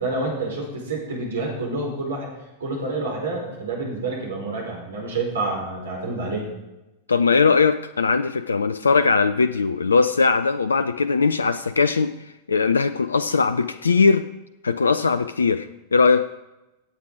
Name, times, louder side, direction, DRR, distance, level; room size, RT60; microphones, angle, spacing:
voice 1, 0.0-2.3 2.6-6.5, right 2 dB, 65° right, -1 dB, 4.8 m, -28 dB
voice 2, 7.1-14.2 14.6-16.2, left 4 dB, 75° left, 13 dB, 0.4 m, -20 dB
16.5 x 7.7 x 4.9 m, 0.98 s
figure-of-eight pair, 90°, 0 cm